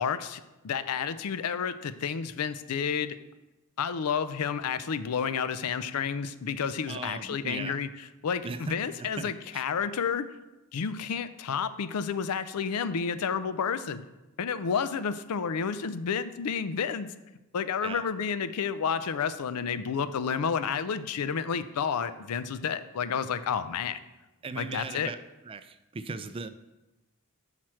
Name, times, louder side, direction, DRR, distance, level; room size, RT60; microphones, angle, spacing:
voice 1, 0.0-3.2 3.8-7.9 8.2-10.3 10.7-14.0 14.4-17.1 17.5-24.0 24.6-25.1, left 6 dB, 85° left, 13 dB, 0.5 m, -30 dB
voice 2, 6.9-7.8 8.4-9.6 17.8-18.0 24.4-25.2 25.4-26.5, right 4 dB, 25° right, 12 dB, 0.3 m, -38 dB
5.8 x 4.5 x 6.2 m, 1.0 s
head